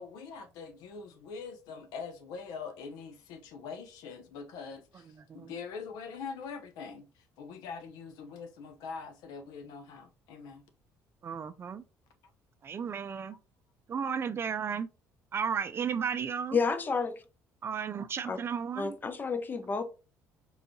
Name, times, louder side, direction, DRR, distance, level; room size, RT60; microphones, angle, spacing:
voice 1, 0.0-10.6 13.2-13.3, left 5 dB, 85° left, 0.7 m, -43 dB
voice 2, 11.2-11.8 12.6-13.4 13.9-14.9 15.3-16.6 17.6-19.0, right 7 dB, 35° right, 0.4 m, -34 dB
voice 3, 16.5-17.2 18.3-18.4 18.8-19.8, left 5 dB, 30° left, 0.6 m, -30 dB
4.7 x 2.6 x 2.7 m
cardioid pair, 95°, 7 cm